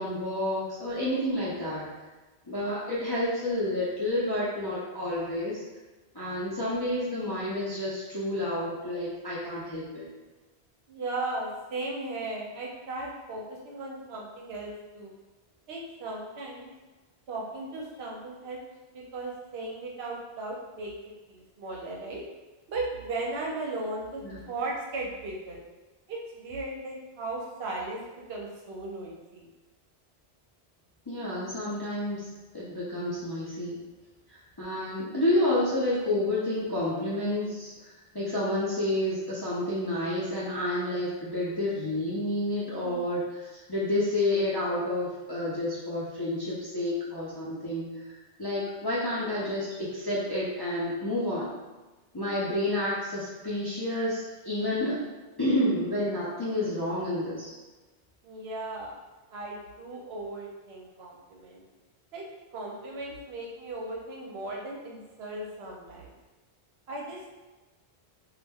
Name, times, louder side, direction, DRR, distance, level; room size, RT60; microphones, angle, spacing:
voice 1, 0.0-1.9 2.5-5.6 6.1-10.1 24.2-24.4 31.1-32.3 32.5-33.7 34.3-48.1 48.4-51.5 52.1-55.0 55.4-57.5, left 1 dB, 35° left, -9 dB, 0.4 m, -30 dB
voice 2, 10.9-15.1 15.7-16.7 17.3-18.6 18.9-20.9 21.3-22.2 22.7-25.6 26.1-28.0 28.3-29.5 42.8-43.0 58.2-58.9 59.3-61.6 62.1-62.3 62.5-66.1 66.9-67.3, right 2 dB, 70° right, -2 dB, 0.8 m, -36 dB
2.3 x 2.1 x 3.4 m, 1.2 s
omnidirectional pair, 1.1 m